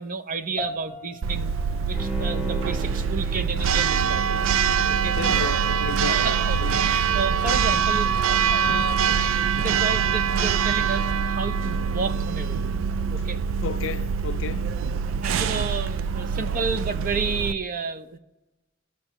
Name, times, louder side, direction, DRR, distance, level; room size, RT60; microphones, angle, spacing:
voice 1, 0.0-1.5 1.9-4.2 4.9-5.2 6.1-9.2 9.6-12.7 13.1-13.4 14.9-18.2, right 4 dB, 45° right, 0.6 m, -31 dB
sound 1, 0.6-10.1, left 4 dB, 30° right, 2.2 m, -45 dB
Church bell, 1.2-17.5, right 6 dB, 90° right, 0.3 m, -24 dB
Bowed string instrument, 1.9-6.5 6.9-7.0, right 2 dB, 5° right, 1.0 m, -37 dB
voice 2, 5.0-6.3 6.6-6.9 13.6-14.7, left 6 dB, 75° left, 0.4 m, -33 dB
16.0 x 6.5 x 3.0 m
head